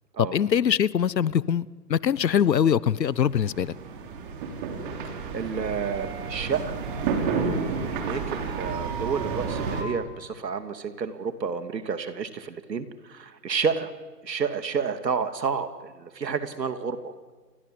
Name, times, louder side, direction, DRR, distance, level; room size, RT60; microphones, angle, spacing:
voice 1, 0.2-3.7, left 8 dB, 85° left, 21 dB, 1.1 m, -23 dB
sound 1, 3.1-9.8, right 5 dB, 30° right, 3.7 m, -31 dB
voice 2, 5.3-13.9 14.2-17.1, right 6 dB, 80° right, 9 dB, 2.8 m, -30 dB
29.5 x 23.5 x 7.9 m, 1.4 s
hypercardioid pair, 160°, 49 cm